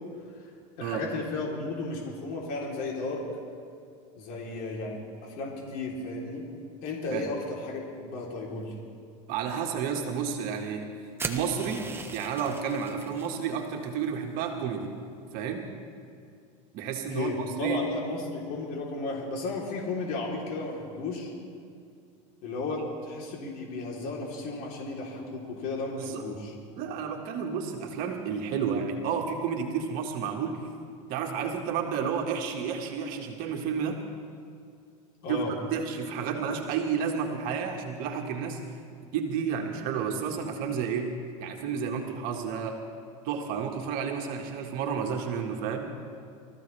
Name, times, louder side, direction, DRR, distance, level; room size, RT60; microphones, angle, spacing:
voice 1, 0.8-3.3 4.2-6.5 6.8-8.7 17.1-21.3 22.4-26.5 35.2-35.5, left 3 dB, 60° left, -3 dB, 3.6 m, -34 dB
voice 2, 9.3-10.9 11.3-14.9 15.3-15.7 16.7-17.3 17.6-17.8 26.0-26.2 26.8-30.7 31.1-34.0 35.3-35.4 35.7-38.6 39.1-41.1 41.4-42.8 43.2-45.9, right 6 dB, 60° right, 2 dB, 1.8 m, -31 dB
sound 1, 11.2-13.4, right 3 dB, 15° right, 1.3 m, -38 dB
24.5 x 14.5 x 3.4 m, 2.4 s
supercardioid pair, 105°, 17 cm